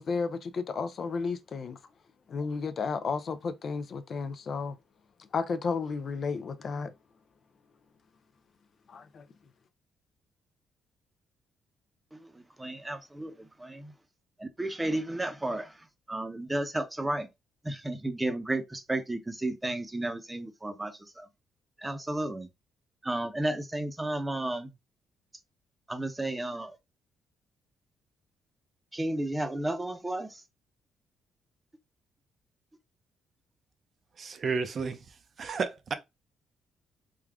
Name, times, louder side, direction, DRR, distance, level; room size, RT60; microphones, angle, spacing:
voice 1, 0.0-1.8 2.3-4.7 5.3-6.9 8.9-9.2, left 5 dB, 50° left, 0.5 m, -32 dB
voice 2, 12.6-13.3 13.6-13.9 14.4-15.7 16.1-17.3 17.6-21.3 21.8-22.5 23.0-24.7 25.9-26.7 28.9-30.3, right 1 dB, 15° right, 0.7 m, -32 dB
voice 3, 34.2-35.0 35.4-35.9, right 5 dB, 50° right, 0.5 m, -31 dB
3.6 x 2.3 x 3.5 m
cardioid pair, 90°, 0 cm